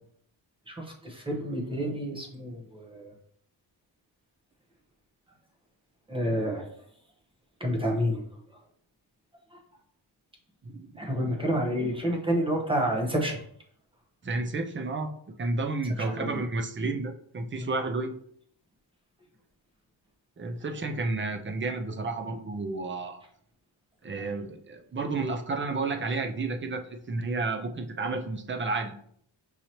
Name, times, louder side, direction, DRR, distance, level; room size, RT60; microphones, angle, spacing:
voice 1, 0.7-3.1 6.1-6.7 7.6-8.3 9.5-9.6 11.0-13.4 16.0-16.4 17.5-17.7, equal, 10° right, 0 dB, 0.8 m, -29 dB
voice 2, 10.7-11.1 14.2-15.1 15.4-18.1 20.4-23.2 24.0-28.9, right 3 dB, 30° right, 5 dB, 0.4 m, -31 dB
6.3 x 2.8 x 2.9 m, 0.63 s
wide cardioid pair, 175°, 47 cm